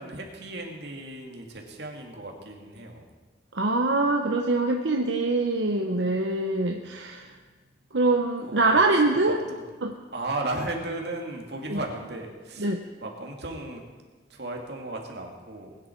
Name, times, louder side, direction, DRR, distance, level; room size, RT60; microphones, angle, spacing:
voice 1, 0.0-3.0 8.4-8.8 9.1-9.7 10.1-12.7 13.0-13.8 14.3-15.8, right 2 dB, 65° right, 1 dB, 2.4 m, -35 dB
voice 2, 3.5-7.3 7.9-9.4 9.8-10.0 11.7-11.8 12.6-12.8, right 2 dB, 85° right, 2 dB, 1.0 m, -24 dB
20.5 x 10.0 x 4.6 m, 1.4 s
head